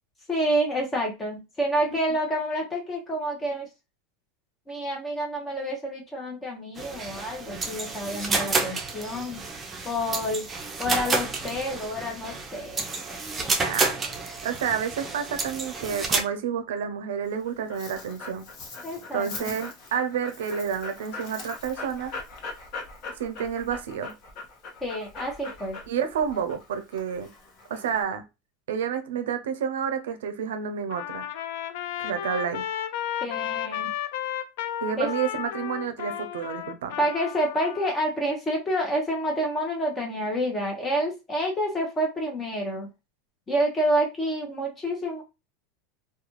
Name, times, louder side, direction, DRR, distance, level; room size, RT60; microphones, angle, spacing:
voice 1, 0.3-3.7 4.7-9.4 9.8-10.5 10.8-13.5 18.8-19.5 24.8-25.8 33.2-33.9 35.0-35.1 37.0-42.9 43.5-45.2, equal, 20° left, 0.7 m, -28 dB
sound 1, 6.8-16.2, right 3 dB, 20° right, 0.5 m, -30 dB
voice 2, 13.6-14.0 14.4-18.5 19.1-22.1 23.2-24.2 25.9-27.3 27.7-28.2 28.7-31.3 32.0-32.6 34.8-37.0, right 7 dB, 85° right, 0.4 m, -30 dB
Dog, 17.2-28.0, left 3 dB, 50° left, 0.9 m, -41 dB
Trumpet, 30.9-38.0, left 11 dB, 70° left, 0.3 m, -33 dB
2.3 x 2.2 x 2.9 m
supercardioid pair, 120°, 0 cm